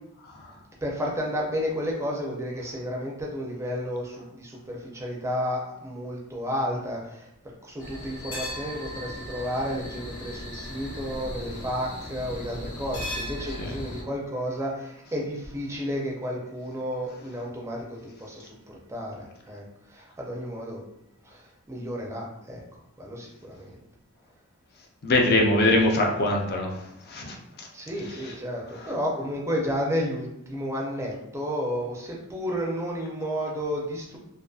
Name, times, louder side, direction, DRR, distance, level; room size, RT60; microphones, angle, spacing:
voice 1, 0.8-7.3 7.6-20.8 21.2-22.6 23.0-23.8 27.7-34.2, equal, 15° right, -2 dB, 0.4 m, -32 dB
sound 1, 7.8-14.0, left 1 dB, 65° left, 0.8 m, -37 dB
voice 2, 25.0-27.7, left 1 dB, 45° left, 0 dB, 0.5 m, -23 dB
2.5 x 2.3 x 2.3 m, 0.82 s
head